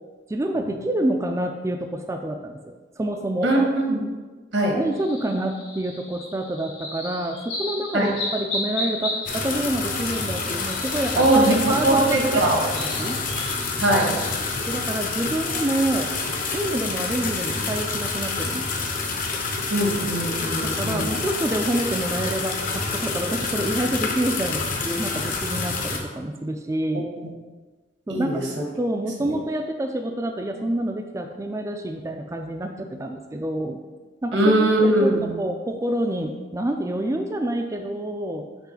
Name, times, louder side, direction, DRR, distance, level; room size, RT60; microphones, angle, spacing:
voice 1, 0.3-3.5 4.7-11.3 11.7-12.4 12.7-13.2 14.7-16.1 16.5-18.9 20.6-27.1 28.1-28.5 28.8-33.8 34.2-38.5, right 1 dB, 15° right, 4 dB, 0.3 m, -27 dB
voice 2, 3.4-4.0 4.5-4.8 7.9-8.1 11.2-11.6 11.8-12.6 13.8-14.2 19.7-21.1 28.1-28.4 29.2-29.3 34.3-35.3, right 1 dB, 85° right, 0 dB, 1.5 m, -20 dB
sound 1, 4.9-14.6, left 2 dB, 80° left, 1.6 m, -35 dB
sound 2, 9.3-26.0, left 4 dB, 45° left, 0.8 m, -28 dB
6.0 x 3.2 x 5.7 m, 1.3 s
head